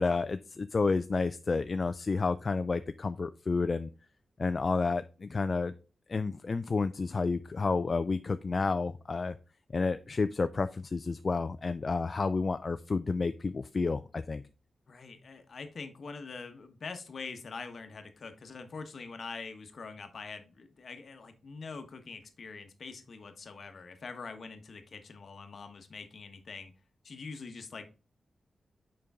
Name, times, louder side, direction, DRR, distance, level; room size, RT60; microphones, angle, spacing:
voice 1, 0.0-3.9 4.4-5.7 6.1-9.4 9.7-14.4, left 4 dB, 40° left, 11 dB, 0.3 m, -30 dB
voice 2, 14.9-26.7 27.0-27.9, left 4 dB, 60° left, 7 dB, 1.2 m, -44 dB
6.8 x 5.2 x 3.6 m, 0.32 s
wide cardioid pair, 105°, 0 cm